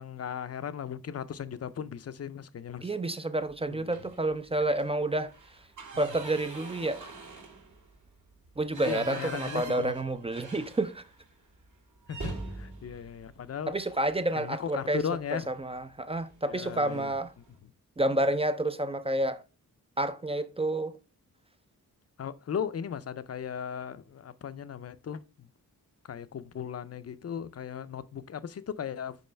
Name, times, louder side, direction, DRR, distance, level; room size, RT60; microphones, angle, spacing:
voice 1, 0.0-2.9 3.7-4.0 5.9-6.1 8.7-9.9 12.1-13.7 14.3-15.5 16.5-17.1 22.2-25.5 26.1-29.2, left 8 dB, 45° left, 0.5 m, -37 dB
voice 2, 2.8-5.3 6.0-7.1 8.6-11.0 13.7-15.0 15.5-17.3 18.0-19.4 20.0-21.0, right 1 dB, 15° right, 0.3 m, -29 dB
sound 1, 3.9-4.3 4.7-4.8 5.2-11.2 11.5-11.7 12.1-14.2 15.5-15.8 16.2-16.3 16.6-17.3, right 3 dB, 55° right, 1.7 m, -43 dB
5.4 x 4.8 x 4.3 m
wide cardioid pair, 155°, 36 cm